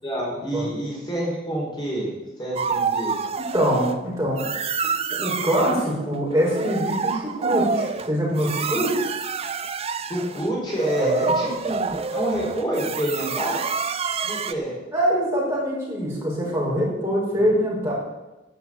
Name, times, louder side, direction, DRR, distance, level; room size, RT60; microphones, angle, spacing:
voice 1, 0.0-2.1 2.4-3.2 10.1-13.6 14.2-14.7, right 1 dB, 25° left, -5 dB, 4.1 m, -28 dB
sound 1, 2.6-4.0 4.4-5.8 6.3-14.5, right 5 dB, 35° right, 0.6 m, -27 dB
voice 2, 3.4-4.5 5.1-9.1 11.0-11.3 14.9-17.9, equal, 15° right, -5 dB, 5.4 m, -23 dB
12.5 x 7.0 x 8.8 m, 1.0 s
head